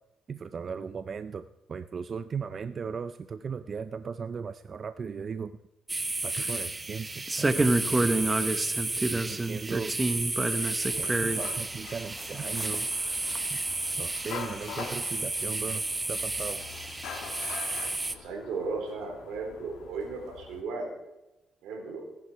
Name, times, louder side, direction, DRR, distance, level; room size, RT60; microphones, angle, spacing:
voice 1, 0.3-5.6 6.2-8.3 9.0-10.0 11.0-12.9 13.5-13.6 14.0-16.6, right 6 dB, 45° right, 12 dB, 0.6 m, -37 dB
sound 1, 5.9-18.1, right 2 dB, 20° right, 1.2 m, -29 dB
sound 2, 10.8-20.6, left 7 dB, 90° left, 2.3 m, -44 dB
voice 2, 18.1-20.9 21.6-22.1, right 4 dB, 85° right, 1 dB, 4.4 m, -35 dB
19.0 x 10.5 x 4.7 m, 0.98 s
cardioid pair, 90°, 0 cm